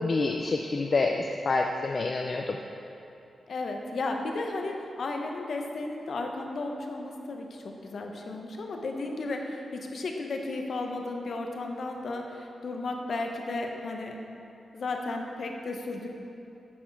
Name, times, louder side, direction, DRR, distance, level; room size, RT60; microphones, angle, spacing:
voice 1, 0.0-2.6, left 3 dB, 45° left, 2 dB, 0.4 m, -27 dB
voice 2, 3.5-14.2 14.7-16.1, left 2 dB, 65° left, 2 dB, 0.8 m, -34 dB
9.9 x 4.3 x 4.6 m, 2.9 s
cardioid pair, 90°, 0 cm